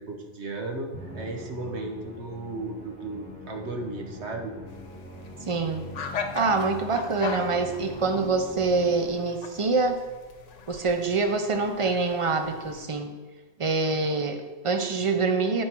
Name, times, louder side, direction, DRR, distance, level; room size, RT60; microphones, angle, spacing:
voice 1, 0.0-4.5, right 2 dB, 65° right, 2 dB, 1.4 m, -35 dB
Musical instrument, 0.9-9.5, equal, 5° left, 1.9 m, -43 dB
sound 1, 4.7-12.9, left 5 dB, 90° left, 1.2 m, -39 dB
voice 2, 5.4-5.8 6.3-10.0 10.7-13.1 13.6-15.6, right 4 dB, 30° right, 6 dB, 0.8 m, -25 dB
13.5 x 4.7 x 4.6 m, 1.3 s
omnidirectional pair, 1.2 m